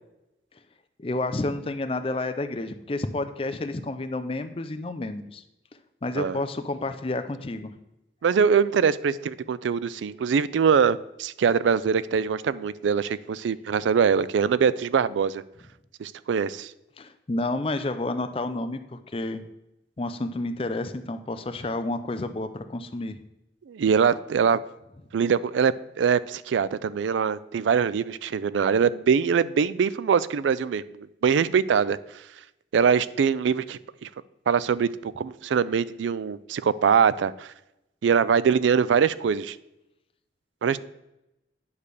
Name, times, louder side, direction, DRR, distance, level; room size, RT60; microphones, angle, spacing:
voice 1, 1.0-5.4 6.0-7.7 17.0-19.4 20.0-23.2, left 2 dB, 30° left, 9 dB, 0.5 m, -30 dB
voice 2, 8.2-15.4 16.0-16.7 23.7-24.6 25.1-32.0 32.7-34.1 34.5-37.5 38.0-39.6 40.6-40.8, right 6 dB, 85° right, 17 dB, 0.3 m, -23 dB
9.7 x 3.3 x 6.7 m, 0.91 s
head